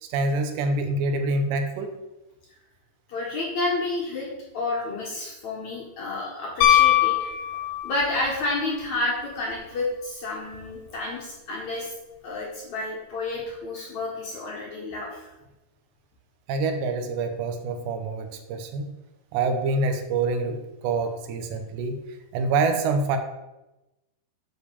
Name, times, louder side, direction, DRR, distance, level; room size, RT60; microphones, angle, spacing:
voice 1, 0.0-2.0 16.5-18.9 19.3-22.0 22.3-23.2, right 3 dB, 80° right, 6 dB, 3.0 m, -26 dB
voice 2, 3.1-4.3 4.5-7.3 7.8-11.9 12.2-15.3, left 2 dB, 55° left, -3 dB, 2.4 m, -30 dB
Piano, 6.6-8.2 10.5-10.6, left 12 dB, 75° left, 3.5 m, -20 dB
9.8 x 4.8 x 7.0 m, 1.0 s
omnidirectional pair, 5.1 m